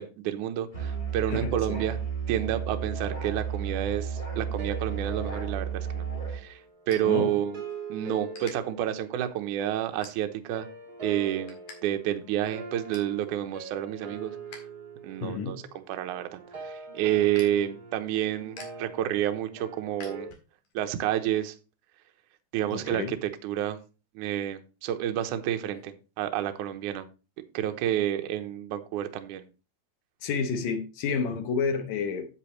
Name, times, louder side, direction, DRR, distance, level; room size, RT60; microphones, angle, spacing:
voice 1, 0.0-2.0 2.3-6.6 6.9-7.6 7.9-10.7 11.0-11.6 11.8-14.4 15.0-20.3 20.7-21.5 22.5-23.8 24.1-27.1 27.5-29.4, right 11 dB, 80° right, 1.8 m, -29 dB
Musical instrument, 0.7-6.4, right 7 dB, 30° left, 0.9 m, -33 dB
voice 2, 1.3-1.8 7.0-7.3 15.2-15.6 22.7-23.1 30.2-32.3, left 5 dB, 75° left, 1.6 m, -30 dB
sound 1, 2.8-10.0 10.5-20.3, right 3 dB, 30° right, 2.1 m, -44 dB
sound 2, 5.8-7.8 8.1-8.5 9.1-9.3 9.9-10.6 11.0-11.8 12.1-12.2 12.5-13.2 13.6-14.6 15.0-20.7, left 4 dB, 55° left, 3.0 m, -50 dB
10.0 x 7.8 x 3.1 m
omnidirectional pair, 4.6 m